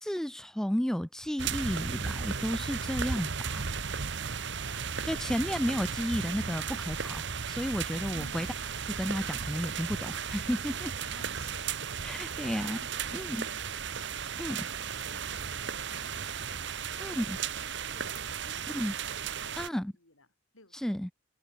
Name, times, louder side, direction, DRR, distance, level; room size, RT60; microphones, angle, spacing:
voice 1, 0.0-3.6 5.1-8.5 9.0-10.9 12.0-12.8 13.1-13.4 14.4-14.7 17.0-17.4 18.7-18.9 19.6-19.9 20.7-21.1, equal, ahead, 0.3 m, -32 dB
sound 1, 1.4-19.7, right 6 dB, 55° right, 1.1 m, -35 dB
voice 2, 4.4-5.6 8.1-8.5 11.0-19.1 19.4-20.3 20.5-21.0, left 2 dB, 80° left, 7.2 m, -58 dB
head